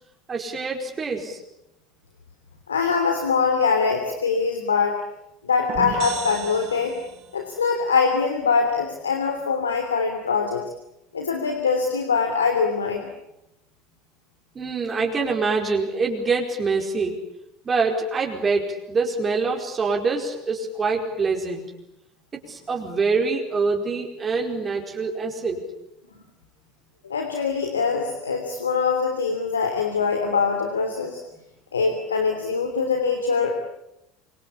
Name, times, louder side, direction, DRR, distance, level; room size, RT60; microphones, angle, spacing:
voice 1, 0.3-1.4 14.5-17.2 17.6-21.6 22.5-25.6, right 4 dB, 30° right, 1 dB, 4.9 m, -25 dB
voice 2, 2.7-5.0 5.4-6.9 7.3-10.6 11.1-13.1 27.0-31.2 31.7-33.6, left 5 dB, 85° left, 4 dB, 3.1 m, -23 dB
sound 1, 5.7-7.4, right 10 dB, 50° right, 7.6 m, -34 dB
26.0 x 25.5 x 8.6 m, 0.86 s
hypercardioid pair, 70°, 0 cm